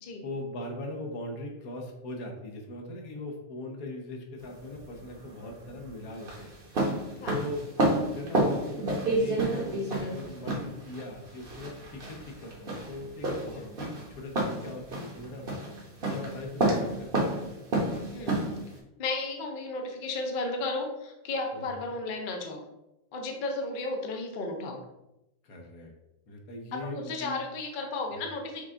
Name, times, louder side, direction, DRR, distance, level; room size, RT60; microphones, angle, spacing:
voice 1, 0.2-6.5 7.3-7.6 8.0-15.5 16.0-17.3 25.4-25.9 26.3-27.4, left 2 dB, 85° left, 1 dB, 1.3 m, -40 dB
sound 1, 4.4-18.8, right 1 dB, 45° right, 1.1 m, -30 dB
voice 2, 18.1-18.4 19.0-22.6 23.1-24.8 26.7-28.6, left 3 dB, 50° left, 2 dB, 0.6 m, -34 dB
5.4 x 2.3 x 3.6 m, 0.91 s
omnidirectional pair, 1.5 m